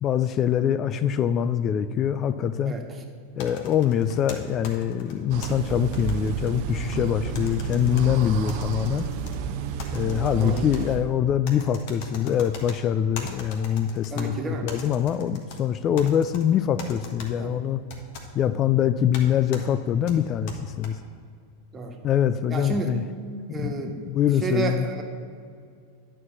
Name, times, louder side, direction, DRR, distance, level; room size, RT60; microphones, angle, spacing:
voice 1, 0.0-2.8 3.4-9.1 9.9-17.8 18.3-21.0 22.0-23.0 23.5-24.9, left 9 dB, 35° left, 12 dB, 0.3 m, -24 dB
voice 2, 2.6-3.0 10.4-10.6 14.1-14.7 17.4-17.6 21.7-21.9 22.5-22.9 23.5-23.9 24.4-25.0, right 4 dB, 25° right, 3 dB, 1.5 m, -30 dB
sound 1, 3.4-5.5 5.9-7.1 7.4-8.1 8.5-9.4 9.8-10.8 11.5-12.8 13.2-14.3 14.7-15.6 16.0-16.4 16.8-17.3 17.9-18.3 19.1-19.2 19.5-19.6 20.1-20.9, left 4 dB, 60° left, 1.4 m, -40 dB
sound 2, 5.3-11.1, right 8 dB, 55° right, 0.6 m, -31 dB
9.6 x 4.7 x 7.3 m, 2.2 s
hypercardioid pair, 95°, 0 cm